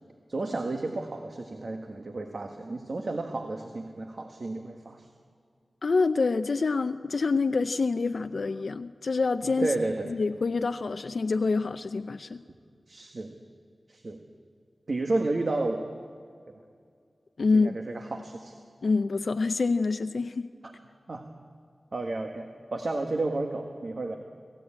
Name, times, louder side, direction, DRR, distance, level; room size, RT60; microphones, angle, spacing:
voice 1, 0.3-5.1 9.6-10.1 12.9-13.3 13.9-14.2 14.9-15.8 17.5-18.5 20.6-20.7 21.1-21.2 21.9-24.2, right 2 dB, 55° right, 4 dB, 1.5 m, -31 dB
voice 2, 5.8-9.7 10.0-12.4 17.4-17.8 18.8-20.5, left 4 dB, 70° left, 9 dB, 0.5 m, -26 dB
26.5 x 16.0 x 8.7 m, 2.2 s
wide cardioid pair, 90°, 0 cm